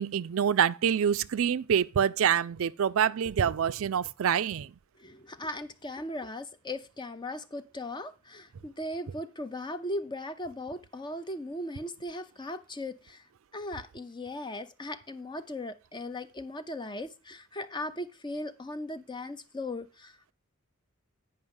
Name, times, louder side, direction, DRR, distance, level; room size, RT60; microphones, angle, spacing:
voice 1, 0.0-4.7, right 8 dB, 65° right, 0.4 m, -26 dB
voice 2, 5.0-13.2 13.5-20.3, left 1 dB, 20° left, 0.6 m, -38 dB
9.3 x 5.5 x 5.3 m
head